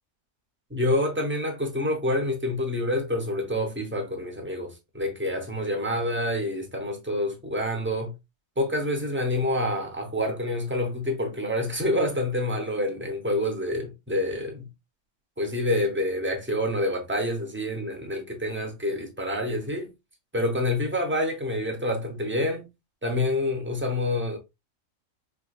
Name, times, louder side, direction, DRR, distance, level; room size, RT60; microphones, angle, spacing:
voice 1, 0.7-8.1 8.6-14.7 15.4-19.9 20.3-22.7 23.0-24.4, left 1 dB, 10° right, 0.7 m, -27 dB
4.7 x 3.0 x 2.4 m
omnidirectional pair, 1.4 m